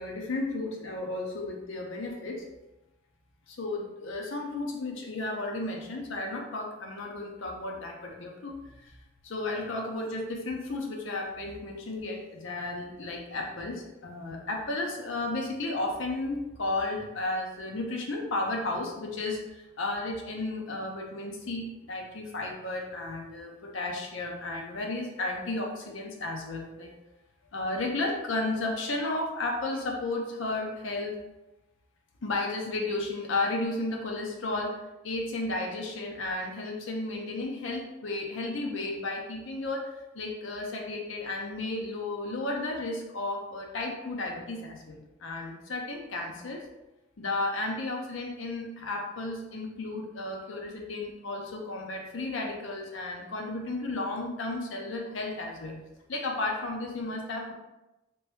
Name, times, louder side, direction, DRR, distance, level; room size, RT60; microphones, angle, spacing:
voice 1, 0.0-2.4 3.5-9.0 9.2-26.9 27.5-31.2 32.2-46.6 47.2-55.8 56.1-57.5, left 2 dB, 65° left, 1 dB, 0.6 m, -33 dB
2.9 x 2.6 x 3.4 m, 0.99 s
head